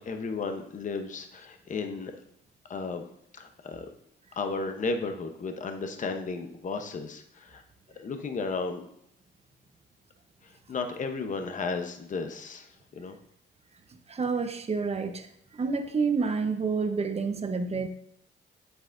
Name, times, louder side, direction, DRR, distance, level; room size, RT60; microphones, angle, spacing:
voice 1, 0.0-2.1 2.7-3.0 3.3-3.9 4.4-7.6 8.0-8.8 10.4-13.2, left 4 dB, 40° left, 6 dB, 0.9 m, -34 dB
voice 2, 14.1-15.3 15.5-17.9, right 4 dB, 30° right, 7 dB, 0.9 m, -28 dB
8.2 x 8.0 x 2.6 m, 0.72 s
cardioid pair, 90°, 20 cm